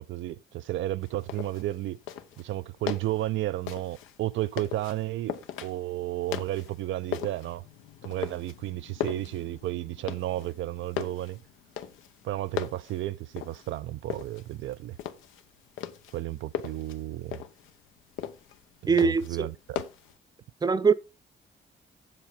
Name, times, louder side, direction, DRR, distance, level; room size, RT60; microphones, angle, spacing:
voice 1, 0.0-2.0 2.4-7.6 8.0-11.4 12.2-15.0 16.1-17.4 18.8-19.8, right 15 dB, 75° right, 0.4 m, -33 dB
sound 1, 1.0-20.2, left 10 dB, 90° left, 0.8 m, -39 dB
voice 2, 18.9-19.5 20.6-20.9, right 5 dB, 20° right, 0.6 m, -22 dB
7.6 x 7.3 x 4.9 m
cardioid pair, 90°, 20 cm